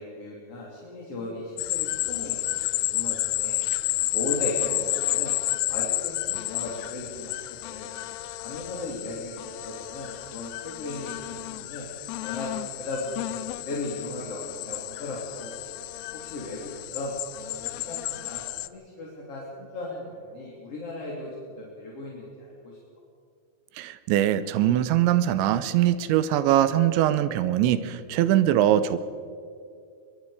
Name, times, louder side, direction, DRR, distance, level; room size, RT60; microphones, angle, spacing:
voice 1, 0.0-3.6 4.1-5.3 5.7-7.9 8.4-11.9 12.2-15.5 16.1-21.3 21.6-22.8, left 2 dB, 35° left, -4 dB, 3.3 m, -37 dB
sound 1, 1.6-18.7, left 18 dB, 85° left, 2.3 m, -31 dB
voice 2, 23.8-29.0, right 12 dB, 85° right, 13 dB, 3.1 m, -22 dB
23.5 x 22.5 x 5.0 m, 2.3 s
omnidirectional pair, 5.3 m